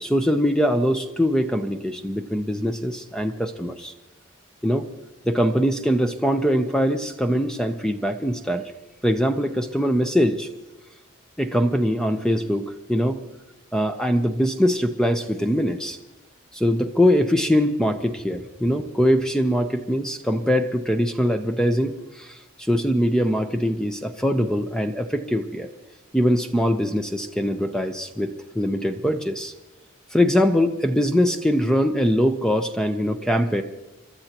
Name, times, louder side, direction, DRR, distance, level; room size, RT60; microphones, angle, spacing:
voice 1, 0.0-3.9 4.6-4.8 5.2-8.6 9.0-10.5 11.4-13.2 13.7-16.0 16.5-25.7 26.1-29.5 30.1-33.6, equal, 5° left, 6 dB, 0.6 m, -22 dB
29.0 x 13.0 x 3.0 m, 1.1 s
head